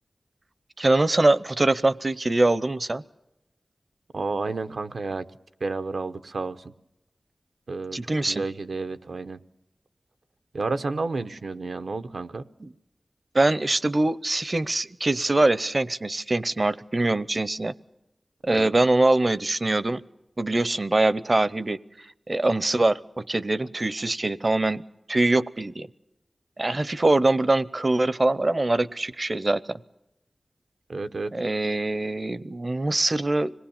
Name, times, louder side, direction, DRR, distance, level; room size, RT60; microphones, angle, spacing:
voice 1, 0.8-3.0 7.9-8.4 12.6-12.7 13.3-17.7 18.4-20.0 20.4-21.8 22.3-24.8 25.1-25.9 26.6-29.8 31.3-33.5, right 2 dB, 35° right, 17 dB, 0.7 m, -23 dB
voice 2, 4.1-5.3 5.6-6.7 7.7-9.4 10.5-12.4 18.5-18.7 30.9-31.3, right 3 dB, 75° right, 9 dB, 0.9 m, -31 dB
26.0 x 19.5 x 7.2 m, 0.89 s
wide cardioid pair, 90°, 0 cm